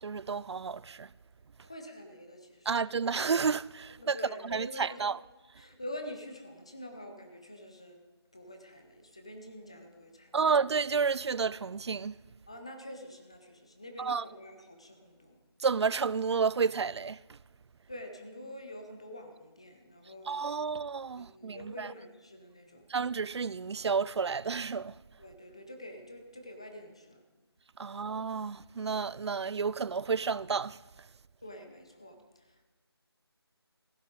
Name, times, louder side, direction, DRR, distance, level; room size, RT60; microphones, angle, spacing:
voice 1, 0.0-1.1 2.7-4.2 4.4-5.2 10.3-12.1 14.0-14.2 15.6-17.4 20.3-21.9 22.9-25.0 27.8-30.8, right 5 dB, 80° right, 0.4 m, -31 dB
voice 2, 1.6-2.7 4.0-5.0 5.6-8.0 8.3-10.5 12.5-15.4 17.9-20.6 21.2-22.9 25.2-27.2 31.4-32.6, left 1 dB, 15° left, 0.6 m, -46 dB
15.5 x 13.5 x 3.8 m
figure-of-eight pair, 175°, 14 cm